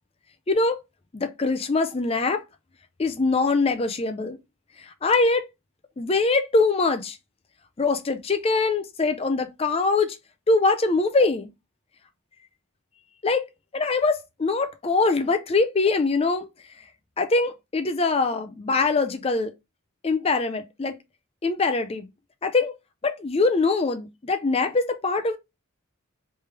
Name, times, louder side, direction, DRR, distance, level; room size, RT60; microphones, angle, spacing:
voice 1, 0.5-0.8 1.1-2.4 3.0-4.4 5.0-5.5 6.0-7.2 7.8-10.2 10.5-11.5 13.2-13.4 13.7-16.5 17.2-19.5 20.0-20.9 21.4-22.1 22.4-22.7 23.0-25.4, left 3 dB, 25° left, 0.4 m, -23 dB
3.2 x 3.1 x 3.3 m
head